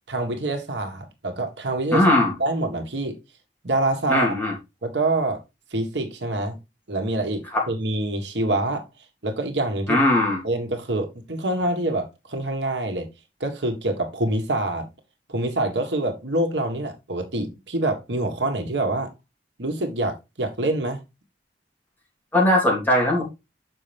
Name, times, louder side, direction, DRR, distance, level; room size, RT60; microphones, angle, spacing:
voice 1, 0.1-2.1 2.4-3.2 3.6-4.3 4.8-5.4 5.7-6.6 6.9-8.8 9.2-10.0 10.4-13.1 13.4-14.9 15.3-19.1 19.6-21.0, right 2 dB, 85° right, 1.6 m, -26 dB
voice 2, 1.9-2.3 4.1-4.5 7.5-7.7 9.9-10.4 22.3-23.2, left 1 dB, 10° left, 3.4 m, -19 dB
6.9 x 5.6 x 3.4 m
head